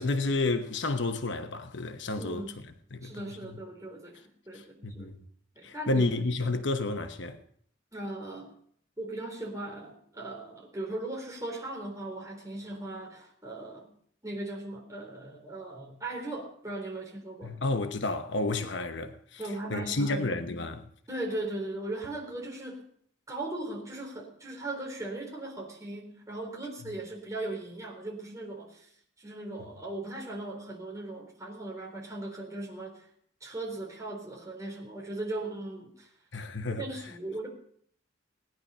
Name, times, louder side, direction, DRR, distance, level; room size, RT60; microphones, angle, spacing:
voice 1, 0.0-2.4 2.9-3.3 4.5-5.2 5.6-7.4 17.4-19.4 19.7-20.9 36.3-36.8, left 2 dB, 65° left, 1.0 m, -31 dB
voice 2, 2.2-2.5 3.0-5.1 5.6-6.1 7.9-8.5 9.0-13.9 14.2-17.5 19.4-20.3 21.1-22.8 23.3-28.9 29.2-33.1 33.4-36.1 36.8-37.5, right 2 dB, 15° right, 3.9 m, -38 dB
18.5 x 10.5 x 5.6 m
head